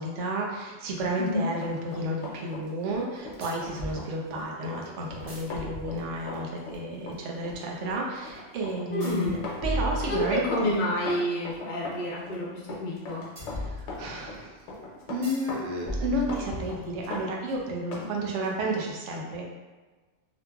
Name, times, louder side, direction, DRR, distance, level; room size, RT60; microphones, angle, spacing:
voice 1, 0.0-10.7 13.5-14.5 15.1-19.5, right 1 dB, 85° right, -1 dB, 0.9 m, -32 dB
sound 1, 1.0-1.1 3.4-4.0 5.1-6.4 9.0-10.7 13.4-14.4 15.2-15.5 15.9-17.2, right 1 dB, 55° right, 1.0 m, -36 dB
Run, 1.1-18.1 18.4-18.6, left 2 dB, 85° left, 1.0 m, -40 dB
voice 2, 8.9-9.3 10.1-13.2, left 1 dB, 50° left, -5 dB, 0.6 m, -29 dB
2.8 x 2.4 x 2.3 m, 1.3 s
omnidirectional pair, 1.2 m